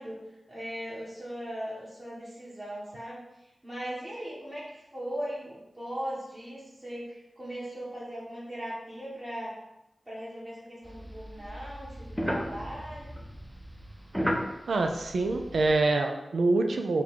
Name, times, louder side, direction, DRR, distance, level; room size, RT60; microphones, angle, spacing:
voice 1, 0.0-9.6 10.0-13.2, equal, 35° right, -10 dB, 1.4 m, -39 dB
sound 1, 10.8-15.9, equal, 5° right, 0.6 m, -35 dB
voice 2, 14.7-17.0, right 2 dB, 85° right, 4 dB, 0.4 m, -25 dB
3.9 x 2.3 x 4.5 m, 0.92 s
cardioid pair, 50°, 0 cm